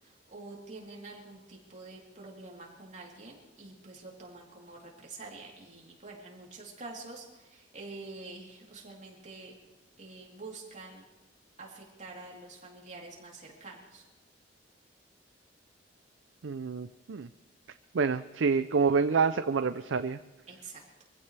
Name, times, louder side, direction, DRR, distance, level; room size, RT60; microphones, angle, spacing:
voice 1, 0.0-9.5 10.0-11.0 11.6-14.0 20.5-21.0, right 3 dB, 40° right, -2 dB, 3.5 m, -47 dB
voice 2, 16.4-17.3 17.9-20.2, right 5 dB, 90° right, 11 dB, 0.5 m, -27 dB
24.5 x 15.5 x 3.4 m, 1.2 s
head